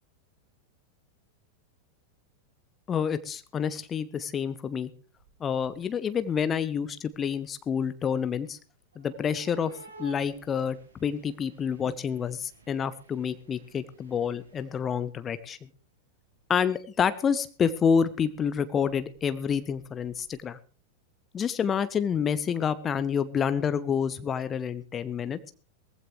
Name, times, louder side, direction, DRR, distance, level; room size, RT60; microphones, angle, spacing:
voice 1, 2.9-4.9 5.4-8.6 9.0-9.7 10.0-15.7 16.5-20.6 21.3-25.4, left 7 dB, 25° left, 13 dB, 0.9 m, -28 dB
sound 1, 5.2-5.9 6.1-7.4 8.9-15.1 16.4-16.5 17.1-17.2 18.2-20.4, right 3 dB, 75° right, 2.9 m, -52 dB
19.5 x 15.0 x 3.1 m, 0.37 s
figure-of-eight pair, 90°, 0 cm